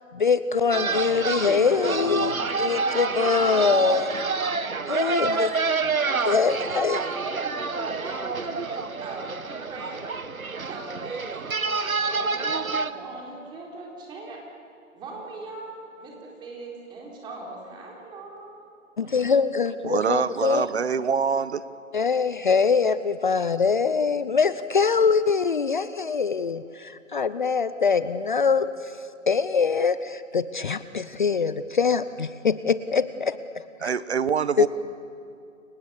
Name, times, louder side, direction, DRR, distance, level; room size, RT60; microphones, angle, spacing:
voice 1, 0.1-4.1 4.9-5.5 6.3-7.0 19.0-20.7 21.9-29.0 29.3-33.4 34.6-34.7, left 5 dB, 35° left, 14 dB, 0.6 m, -23 dB
sound 1, 0.7-12.9, right 4 dB, 85° right, 1.4 m, -28 dB
voice 2, 1.7-2.1 2.8-4.4 4.9-5.5 5.8-7.4 7.9-10.0 10.6-14.4 14.9-18.6 19.0-19.1, right 2 dB, 10° right, -2 dB, 4.3 m, -40 dB
voice 3, 19.8-21.6 33.8-34.7, right 6 dB, 50° right, 16 dB, 1.2 m, -25 dB
30.0 x 24.5 x 7.2 m, 2.6 s
figure-of-eight pair, 150°, 41 cm